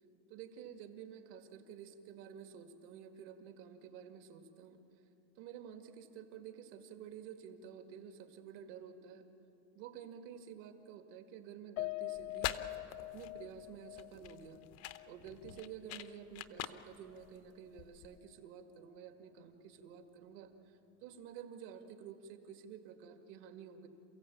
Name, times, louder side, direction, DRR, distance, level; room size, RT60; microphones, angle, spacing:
voice 1, 0.3-4.8 5.4-9.3 9.7-12.6 13.0-14.7 15.1-23.9, right 8 dB, 60° right, 6 dB, 2.3 m, -51 dB
Piano, 11.8-16.2 16.6-16.8 17.2-17.3, left 21 dB, 80° left, 0.6 m, -45 dB
sound 1, 12.1-18.2, left 12 dB, 40° left, 0.8 m, -45 dB
28.5 x 15.5 x 8.6 m, 2.9 s
cardioid pair, 175°, 40 cm